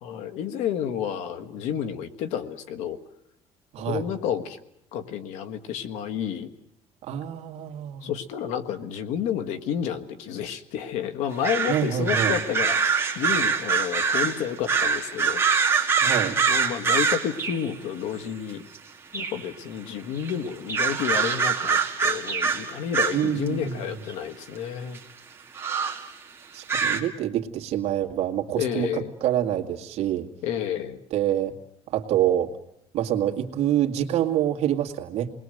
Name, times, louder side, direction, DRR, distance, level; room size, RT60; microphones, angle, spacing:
voice 1, 0.0-3.0 3.9-4.6 4.9-6.5 8.0-15.7 16.4-18.6 19.1-25.0 28.6-29.1 30.4-31.0, left 8 dB, 85° left, 8 dB, 1.7 m, -30 dB
voice 2, 3.7-4.1 7.0-8.1 11.7-12.3 16.0-16.4 23.1-23.8 26.5-30.3 31.1-31.5 31.9-32.5 32.9-35.3, right 11 dB, 65° right, 4 dB, 2.1 m, -26 dB
sound 1, 11.4-17.7 18.7-18.8 19.1-19.5 20.2-20.3 20.7-23.5 24.1-24.2 24.9-25.0 25.6-26.0 26.7-27.0, right 5 dB, 20° right, 2.4 m, -24 dB
29.0 x 20.5 x 7.8 m, 0.76 s
cardioid pair, 140°, 12 cm